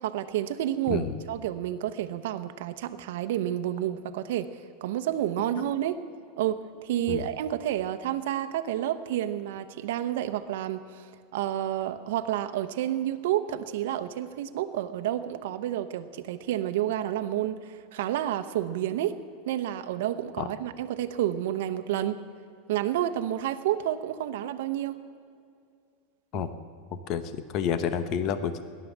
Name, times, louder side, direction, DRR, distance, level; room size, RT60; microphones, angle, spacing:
voice 1, 0.0-4.5 4.8-6.0 6.4-11.1 11.3-19.2 19.5-22.2 22.7-25.0 26.3-26.4, right 12 dB, 75° right, 9 dB, 0.9 m, -30 dB
voice 2, 0.9-1.2 7.1-7.2 20.4-20.5 26.3-26.5 26.9-28.6, left 7 dB, 40° left, 11 dB, 0.8 m, -29 dB
16.5 x 11.0 x 7.3 m, 2.3 s
supercardioid pair, 165°, 0 cm